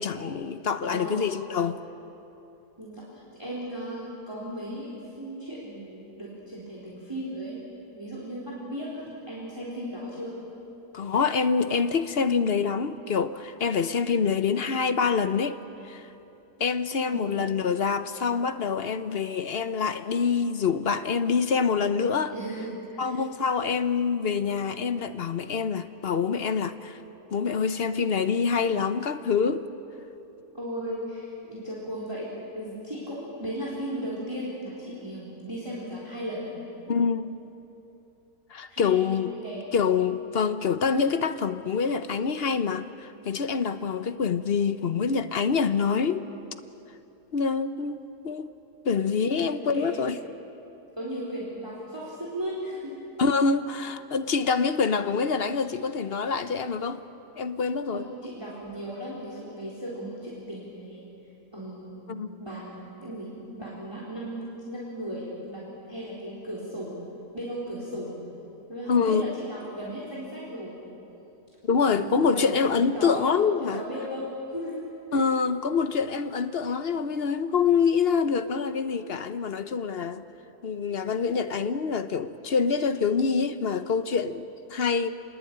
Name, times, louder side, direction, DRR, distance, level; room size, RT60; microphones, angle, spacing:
voice 1, 0.0-1.8 10.9-15.6 15.9-16.0 16.6-22.3 23.0-27.0 27.3-29.7 36.9-37.4 38.5-39.3 39.7-46.3 47.3-48.5 48.8-50.2 53.2-57.0 57.4-58.0 62.1-62.4 68.9-69.3 71.6-73.8 75.1-80.2 80.6-85.1, left 5 dB, 50° left, 0.9 m, -26 dB
voice 2, 0.8-1.2 2.8-7.6 7.9-10.4 17.1-17.3 22.2-23.2 30.5-36.5 38.7-39.6 49.0-49.5 49.7-50.0 51.0-52.9 57.9-61.1 61.5-62.1 62.4-67.0 67.3-68.2 68.7-70.8 71.9-72.6 72.9-73.3 73.7-74.8 75.1-75.2 84.2-84.4, equal, 15° right, 4.0 m, -36 dB
28.5 x 21.0 x 8.8 m
omnidirectional pair, 1.7 m